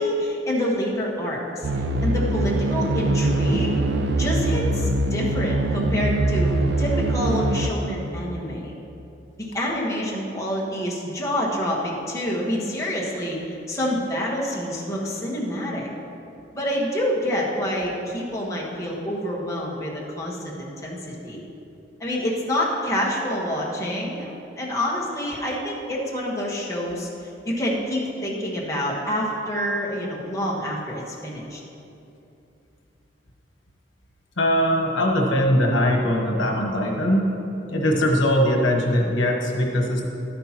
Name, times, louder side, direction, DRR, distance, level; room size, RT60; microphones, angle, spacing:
voice 1, 0.0-1.7 2.0-3.7 4.1-8.7 9.4-15.9 16.5-21.4 22.0-27.1 27.4-31.6, equal, 15° left, -5 dB, 1.4 m, -27 dB
sound 1, 1.6-7.7, right 2 dB, 65° right, 0.5 m, -23 dB
voice 2, 34.4-37.3 37.7-40.1, equal, 90° left, 1 dB, 1.2 m, -21 dB
11.5 x 10.0 x 3.0 m, 2.7 s
head